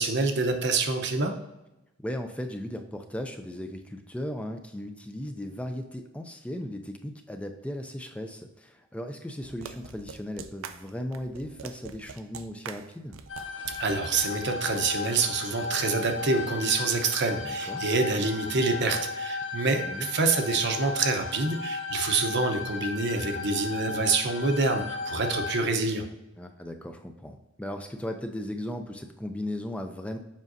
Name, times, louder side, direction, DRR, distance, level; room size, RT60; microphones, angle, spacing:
voice 1, 0.0-1.3 13.8-26.0, right 3 dB, 60° right, 5 dB, 0.8 m, -27 dB
voice 2, 2.0-13.2 17.4-17.8 19.6-20.1 26.4-30.2, left 1 dB, 5° left, 5 dB, 0.4 m, -37 dB
sound 1, 9.4-14.2, right 6 dB, 85° right, 0.4 m, -43 dB
sound 2, 13.3-25.6, left 4 dB, 70° left, 0.7 m, -35 dB
7.4 x 5.1 x 2.6 m, 0.96 s
head